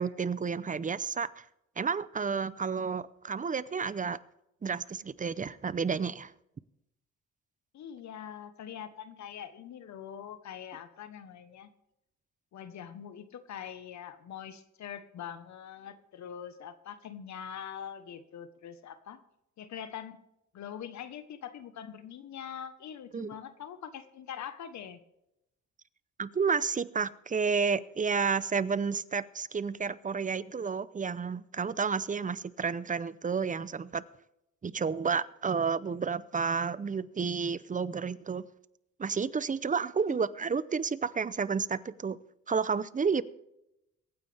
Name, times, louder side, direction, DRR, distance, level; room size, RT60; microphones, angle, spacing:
voice 1, 0.0-1.4 1.8-4.2 4.6-6.3 23.1-23.3 26.2-34.0 34.6-38.4 39.0-42.2 42.5-43.2, right 5 dB, 25° right, 18 dB, 0.6 m, -31 dB
voice 2, 7.7-11.7 12.5-19.2 19.6-20.2 20.5-25.0 40.1-40.2, left 8 dB, 70° left, 11 dB, 1.2 m, -43 dB
23.0 x 9.4 x 3.5 m, 0.85 s
cardioid pair, 90°, 30 cm